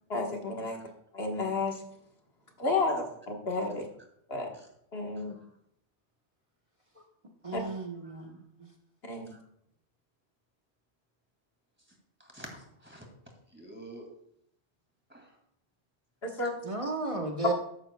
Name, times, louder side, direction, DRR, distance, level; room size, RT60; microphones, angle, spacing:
voice 1, 0.1-0.8 1.1-1.8 2.6-3.9 4.3-4.5 4.9-5.3 7.5-7.6 9.0-9.3 16.2-16.5 16.8-16.9, left 3 dB, 70° left, 2 dB, 1.7 m, -31 dB
voice 2, 7.4-8.3 16.6-17.5, right 3 dB, 30° right, 0 dB, 1.2 m, -33 dB
voice 3, 12.2-13.1 13.5-14.1 15.1-15.3, right 1 dB, 10° right, 1 dB, 2.4 m, -49 dB
13.0 x 10.5 x 2.3 m, 0.72 s
omnidirectional pair, 1.1 m